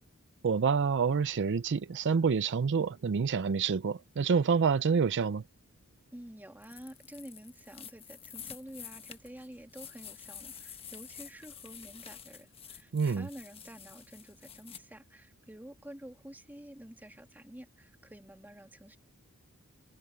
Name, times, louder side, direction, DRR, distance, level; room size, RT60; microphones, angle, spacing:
voice 1, 0.4-5.4 12.9-13.3, right 5 dB, 55° right, 0.5 m, -27 dB
voice 2, 6.1-19.0, right 1 dB, 10° right, 2.0 m, -49 dB
sound 1, 6.6-14.8, left 8 dB, 25° left, 1.4 m, -49 dB
head